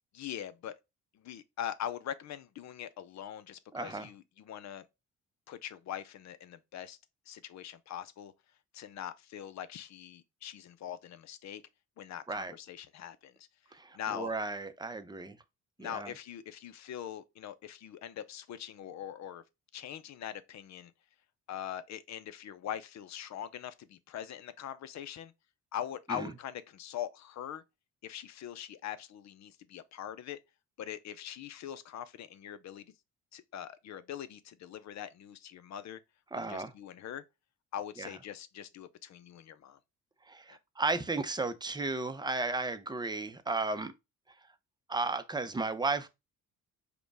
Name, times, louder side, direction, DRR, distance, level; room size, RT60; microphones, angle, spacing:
voice 1, 0.1-0.7 1.2-4.8 5.5-7.0 7.3-8.3 8.7-11.6 12.0-13.5 13.9-14.3 15.8-19.4 19.7-20.9 21.5-25.3 25.7-27.6 28.0-30.4 30.8-32.9 33.3-36.0 36.5-37.2 37.7-39.8, left 10 dB, 65° left, 0.6 m, -42 dB
voice 2, 3.7-4.1 12.3-12.5 13.7-15.4 15.8-16.1 26.1-26.3 36.3-36.7 38.0-38.1 40.3-43.9 44.9-46.1, right 3 dB, 15° right, 0.6 m, -34 dB
5.0 x 2.2 x 4.6 m
cardioid pair, 90°, 30 cm